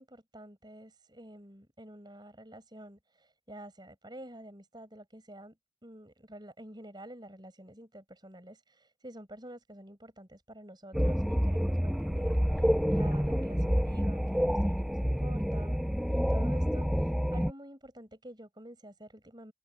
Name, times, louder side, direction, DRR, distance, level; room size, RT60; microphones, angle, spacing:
voice 1, 0.0-5.6 5.8-15.8 16.1-19.5, right 1 dB, 20° right, 7.2 m, -49 dB
sound 1, 10.9-17.5, equal, ahead, 0.5 m, -28 dB
head